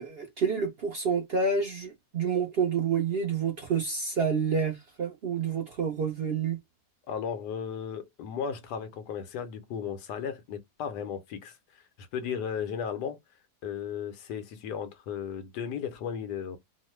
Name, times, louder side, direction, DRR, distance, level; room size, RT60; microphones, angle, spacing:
voice 1, 0.0-6.6, right 5 dB, 55° right, 0.7 m, -28 dB
voice 2, 7.1-13.2 13.6-16.6, left 7 dB, 85° left, 1.3 m, -35 dB
3.0 x 2.0 x 3.0 m
omnidirectional pair, 1.7 m